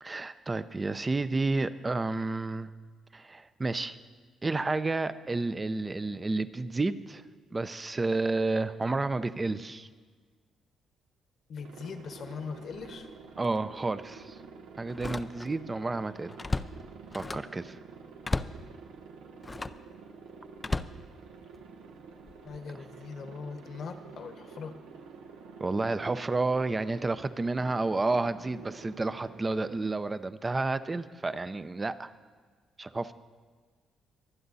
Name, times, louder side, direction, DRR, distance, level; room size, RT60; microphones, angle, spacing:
voice 1, 0.0-2.7 3.1-4.0 4.4-7.2 7.5-9.9 13.4-14.4 14.8-16.3 17.1-17.8 25.6-32.1 32.8-33.1, right 3 dB, 25° right, 13 dB, 0.6 m, -30 dB
voice 2, 11.5-13.1 22.4-24.8, left 5 dB, 60° left, 8 dB, 1.2 m, -40 dB
Aircraft, 11.6-29.9, right 5 dB, 90° right, 1.1 m, -49 dB
Slam, 12.7-13.0 13.4-13.6 14.9-15.7 16.0-17.6 18.2-18.7 19.4-19.9 20.6-21.7 22.3-22.6, left 3 dB, 20° left, 0.4 m, -35 dB
24.0 x 9.4 x 4.1 m, 1.5 s
cardioid pair, 90°, 0 cm